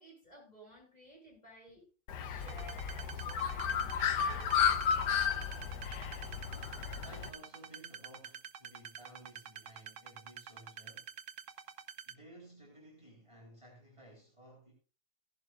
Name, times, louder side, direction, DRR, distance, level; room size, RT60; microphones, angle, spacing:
voice 1, 0.0-1.9 2.2-5.2, equal, 20° left, 7.8 m, -56 dB
Bird, 2.1-7.3, left 8 dB, 70° left, 1.5 m, -33 dB
sound 1, 2.4-12.1, right 8 dB, 55° right, 0.9 m, -48 dB
voice 2, 7.0-11.1 12.1-14.7, right 1 dB, 15° right, 4.4 m, -56 dB
17.0 x 11.5 x 2.5 m
omnidirectional pair, 1.9 m